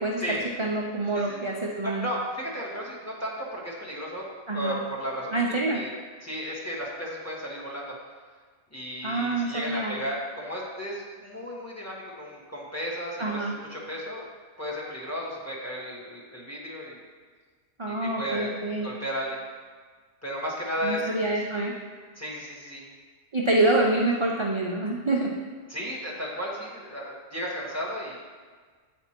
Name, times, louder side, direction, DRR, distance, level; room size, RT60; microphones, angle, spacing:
voice 1, 0.0-2.0 4.5-4.8 5.3-5.8 9.0-10.0 13.2-13.5 17.8-18.9 20.8-21.7 23.3-25.3, right 2 dB, 40° right, -2 dB, 0.4 m, -26 dB
voice 2, 1.8-4.2 4.5-5.4 5.7-5.9 6.2-7.9 8.7-14.2 14.6-17.0 17.9-18.5 18.8-19.4 20.2-21.1 22.2-22.8 25.7-28.2, equal, 15° left, -5 dB, 1.3 m, -34 dB
8.1 x 4.4 x 4.3 m, 1.5 s
omnidirectional pair, 1.3 m